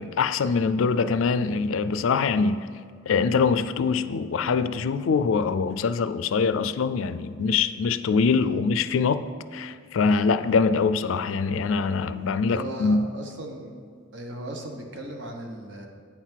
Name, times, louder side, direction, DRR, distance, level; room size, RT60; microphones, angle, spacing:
voice 1, 0.0-2.7 3.1-9.2 9.5-13.1, left 5 dB, 80° left, 0.4 m, -23 dB
voice 2, 12.5-13.7 14.1-15.9, right 1 dB, 65° right, 1.1 m, -37 dB
8.6 x 5.8 x 4.5 m
head